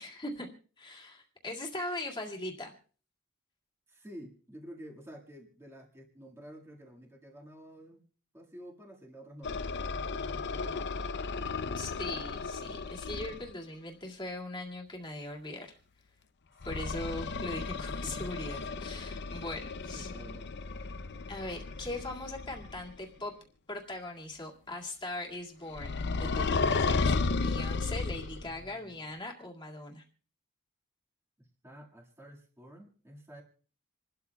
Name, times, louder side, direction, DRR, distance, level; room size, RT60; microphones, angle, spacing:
voice 1, 0.0-2.7 11.7-15.8 16.6-20.1 21.3-23.3 23.7-30.0, left 2 dB, 20° left, -1 dB, 2.2 m, -40 dB
voice 2, 3.9-8.0 8.3-11.0 16.6-16.8 17.7-18.3 19.9-20.5 28.4-29.0 31.4-33.4, equal, 10° right, -2 dB, 1.9 m, -50 dB
sound 1, 9.4-13.5 16.6-22.9 25.8-28.6, left 4 dB, 55° left, 0.7 m, -34 dB
27.5 x 12.5 x 2.3 m, 0.42 s
head